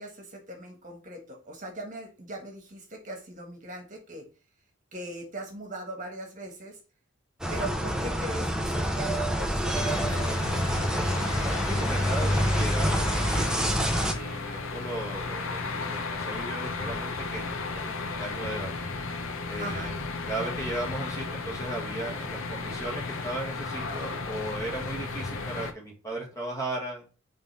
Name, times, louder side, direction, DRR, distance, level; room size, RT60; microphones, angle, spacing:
voice 1, 0.0-4.2 4.9-6.8 7.5-10.7 19.6-19.9, right 1 dB, 40° right, 2 dB, 1.4 m, -40 dB
sound 1, 7.4-14.1, equal, 5° right, 0.6 m, -27 dB
sound 2, 9.7-25.7, left 3 dB, 80° left, 0.8 m, -34 dB
voice 2, 11.6-13.7 14.0-18.7 19.5-27.0, right 1 dB, 15° left, -1 dB, 1.8 m, -36 dB
5.3 x 3.4 x 5.4 m, 0.35 s
head